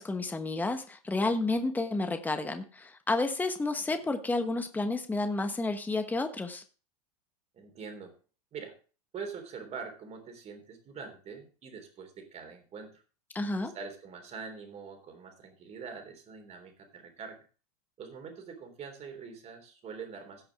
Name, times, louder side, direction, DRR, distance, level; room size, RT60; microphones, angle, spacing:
voice 1, 0.0-6.6 13.3-13.7, left 2 dB, 10° left, 7 dB, 1.2 m, -31 dB
voice 2, 7.5-8.1 8.5-8.8 9.1-13.0 13.6-17.4 18.0-20.5, right 5 dB, 35° right, 6 dB, 3.4 m, -44 dB
16.5 x 6.0 x 3.5 m, 0.35 s
hypercardioid pair, 95°, 20 cm